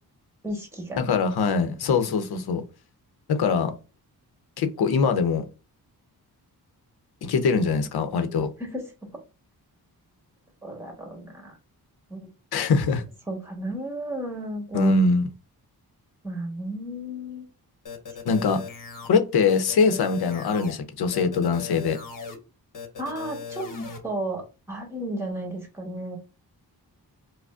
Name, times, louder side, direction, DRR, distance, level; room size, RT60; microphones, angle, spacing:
voice 1, 0.4-1.2 8.6-8.8 10.6-11.6 12.1-12.3 13.3-14.9 16.2-17.4 23.0-23.7 24.0-26.2, right 1 dB, 5° right, 1.2 m, -33 dB
voice 2, 1.0-2.6 3.3-3.7 4.6-5.4 7.2-8.5 12.5-13.0 14.7-15.3 18.2-18.6 19.1-22.0, left 4 dB, 80° left, 0.7 m, -22 dB
sound 1, 17.9-19.1 19.5-20.7 21.1-22.4 22.7-24.0, left 5 dB, 55° left, 1.1 m, -38 dB
4.8 x 2.1 x 2.4 m
cardioid pair, 95°, 38 cm